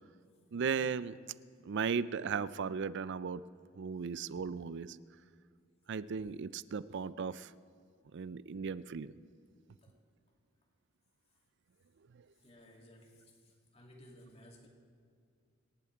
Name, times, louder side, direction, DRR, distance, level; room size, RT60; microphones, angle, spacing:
voice 1, 0.5-1.2 1.7-3.4 3.8-5.0 5.9-7.5 8.1-9.2, right 6 dB, 55° right, 17 dB, 0.4 m, -36 dB
voice 2, 12.4-14.7, equal, 30° left, -1 dB, 2.5 m, -58 dB
27.0 x 11.0 x 4.6 m, 2.2 s
head